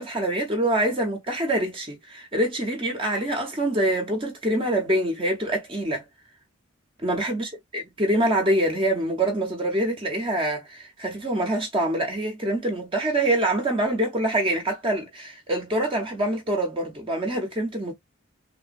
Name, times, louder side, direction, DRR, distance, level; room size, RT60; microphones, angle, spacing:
voice 1, 0.0-6.0 7.0-17.9, right 1 dB, 25° right, 0.7 m, -25 dB
3.3 x 2.1 x 2.4 m
head